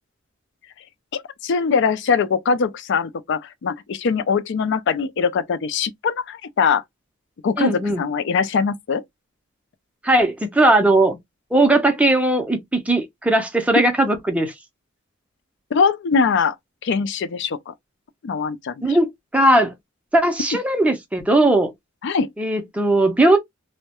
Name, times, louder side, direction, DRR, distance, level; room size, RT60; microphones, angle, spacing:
voice 1, 1.1-6.8 7.4-9.0 15.7-16.5 16.8-17.7 18.2-19.0 22.0-22.3, left 5 dB, 60° left, 0.4 m, -22 dB
voice 2, 7.6-8.0 10.0-11.2 11.5-14.5 18.8-19.7 20.1-21.7 22.4-23.4, right 1 dB, 5° right, 0.5 m, -18 dB
2.2 x 2.1 x 2.8 m
head